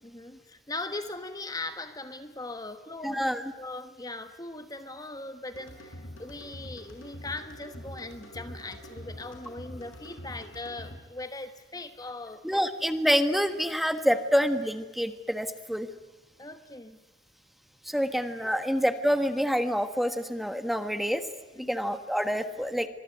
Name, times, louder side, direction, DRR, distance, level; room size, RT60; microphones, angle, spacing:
voice 1, 0.0-12.6 16.4-17.0 18.5-18.6 21.6-21.8, left 2 dB, 20° left, 9 dB, 1.2 m, -40 dB
voice 2, 3.0-3.4 12.4-15.9 17.9-21.2 21.6-22.9, equal, ahead, 9 dB, 1.4 m, -27 dB
sound 1, 5.5-11.0, equal, 90° left, 7.0 m, -44 dB
25.0 x 22.5 x 9.3 m, 1.2 s
head